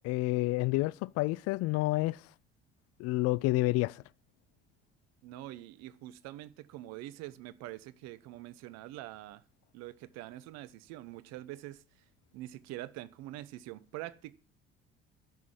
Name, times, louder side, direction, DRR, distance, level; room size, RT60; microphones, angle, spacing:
voice 1, 0.0-2.2 3.0-4.0, left 19 dB, 55° left, 0.5 m, -29 dB
voice 2, 5.2-9.4 9.7-11.8 12.3-14.3, right 15 dB, 60° right, 0.9 m, -45 dB
12.0 x 6.2 x 8.8 m
figure-of-eight pair, 55°, 30 cm